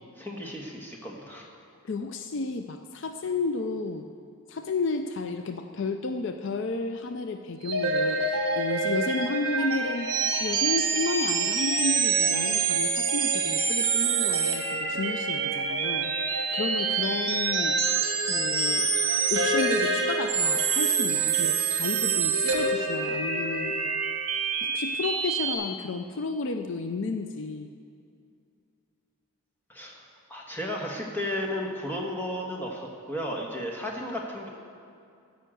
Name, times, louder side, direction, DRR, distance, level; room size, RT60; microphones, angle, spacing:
voice 1, 0.2-1.5 29.7-30.0 30.3-34.5, left 1 dB, 10° left, -1 dB, 1.4 m, -34 dB
voice 2, 1.8-4.1 4.5-10.1 10.4-17.8 18.3-18.9 19.3-23.7 24.6-27.7, left 3 dB, 55° left, 7 dB, 0.5 m, -32 dB
sound 1, 7.6-25.5, right 4 dB, 60° right, 1.6 m, -26 dB
14.0 x 5.7 x 7.7 m, 2.5 s
head